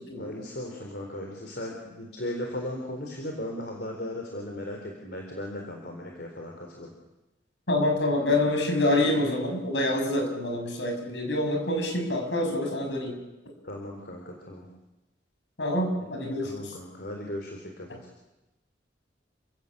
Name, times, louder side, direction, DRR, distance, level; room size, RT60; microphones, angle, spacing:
voice 1, 0.2-6.9 13.6-14.7 16.4-18.0, left 1 dB, 60° left, 1 dB, 4.1 m, -37 dB
voice 2, 7.7-13.2 15.6-16.5, left 1 dB, 80° left, 3 dB, 6.5 m, -26 dB
29.5 x 16.5 x 8.6 m, 1.0 s
head